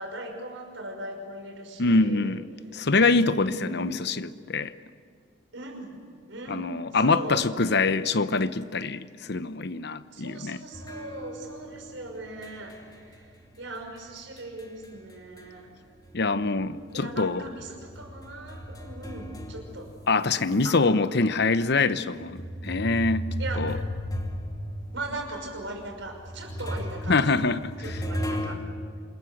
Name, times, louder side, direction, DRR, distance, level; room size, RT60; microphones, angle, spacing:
voice 1, 0.0-2.4 3.5-4.1 5.5-6.0 6.3-6.7 6.9-7.5 10.1-13.3 13.6-15.7 16.9-19.9 20.6-20.8 23.4-23.7 24.9-27.5 27.8-28.6, right 2 dB, 80° right, 5.9 m, -39 dB
voice 2, 1.8-2.4 2.7-4.7 6.5-10.6 16.1-17.4 20.1-23.7 27.1-27.7, left 3 dB, 60° left, 0.9 m, -24 dB
sound 1, 10.7-15.7 16.0-20.7 21.3-21.4 22.2-28.6, equal, 20° left, 2.4 m, -36 dB
27.5 x 21.0 x 8.0 m
head